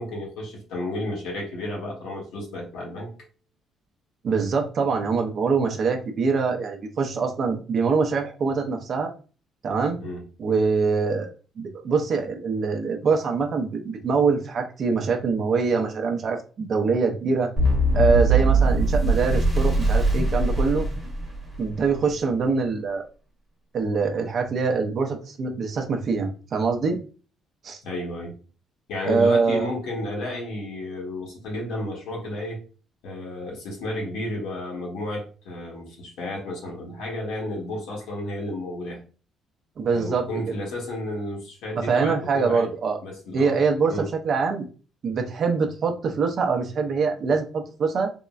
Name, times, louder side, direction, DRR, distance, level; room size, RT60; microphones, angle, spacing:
voice 1, 0.0-3.1 10.0-10.3 27.8-28.4 28.9-32.6 33.0-39.0 39.9-42.7 43.0-43.6 43.9-44.0, left 1 dB, 85° left, 1.2 m, -32 dB
voice 2, 4.2-9.1 9.6-10.0 10.4-11.3 11.6-17.5 17.9-20.9 21.6-23.0 23.7-27.0 27.6-27.8 29.1-29.7 39.8-40.6 41.8-43.0 43.3-44.7 45.0-48.1, right 4 dB, 40° right, 0.5 m, -24 dB
sound 1, 17.6-21.7, right 2 dB, 5° left, 0.9 m, -21 dB
3.6 x 2.1 x 2.3 m
cardioid pair, 170°, 0 cm